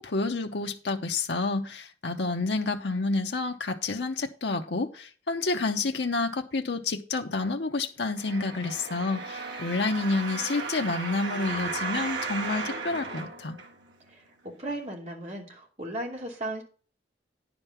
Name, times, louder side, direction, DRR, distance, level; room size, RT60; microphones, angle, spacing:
voice 1, 0.0-13.6, left 3 dB, 70° left, 0.8 m, -29 dB
sound 1, 8.2-14.1 14.7-14.8, right 4 dB, 85° right, 1.6 m, -35 dB
voice 2, 14.1-16.6, right 1 dB, 40° right, 2.8 m, -36 dB
10.0 x 5.3 x 5.8 m
head